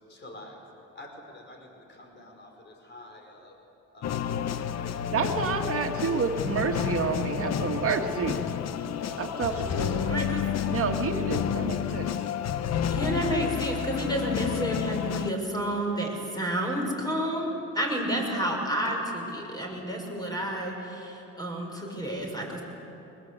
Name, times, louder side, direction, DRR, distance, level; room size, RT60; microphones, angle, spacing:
voice 1, 0.1-0.6 0.9-3.6 3.9-4.1 4.6-5.1 5.7-6.0, left 1 dB, 35° left, 2 dB, 4.9 m, -48 dB
sound 1, 4.0-15.3, left 9 dB, 60° left, 0.9 m, -30 dB
voice 2, 5.1-8.4 9.1-10.3 10.7-12.1, right 5 dB, 50° right, 3 dB, 2.0 m, -29 dB
voice 3, 10.1-10.4 12.9-17.5 17.7-22.6, equal, 15° left, 0 dB, 6.4 m, -30 dB
22.0 x 20.5 x 8.2 m, 3.0 s
cardioid pair, 90°, 30 cm